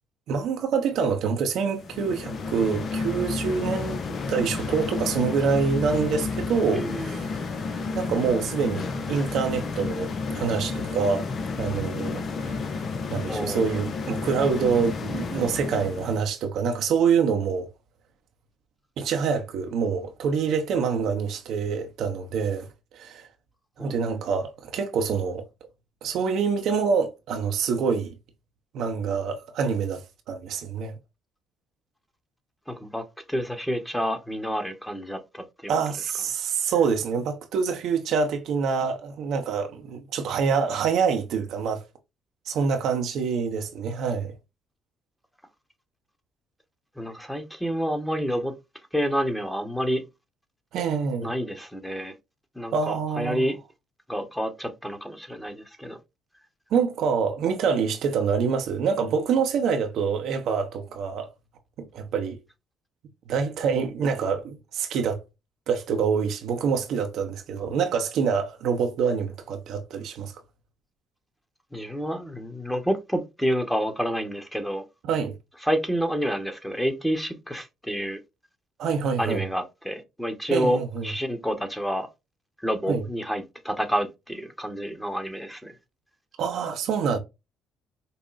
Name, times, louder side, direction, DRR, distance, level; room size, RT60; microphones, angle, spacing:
voice 1, 0.3-4.0 4.3-7.3 7.9-11.3 11.6-12.6 13.1-17.7 19.0-22.7 22.9-23.3 23.8-25.4 26.0-28.1 28.7-30.9 35.7-41.8 42.5-44.3 50.7-51.3 52.7-53.4 56.7-61.3 61.8-62.4 63.3-65.2 65.7-70.3 75.0-75.3 78.8-79.4 80.5-81.1 82.9-83.0 86.4-87.2, right 6 dB, 65° right, 0.7 m, -26 dB
sound 1, 1.8-16.3, left 4 dB, 50° left, 0.6 m, -31 dB
voice 2, 6.7-7.3 13.3-13.8 23.8-24.0 32.7-35.4 47.0-48.5 48.9-50.0 51.2-52.1 52.5-53.6 54.1-56.0 71.7-74.8 75.6-78.2 79.2-82.1 82.6-85.7, equal, 5° left, 1.2 m, -29 dB
5.3 x 2.2 x 2.5 m
hypercardioid pair, 50°, 0 cm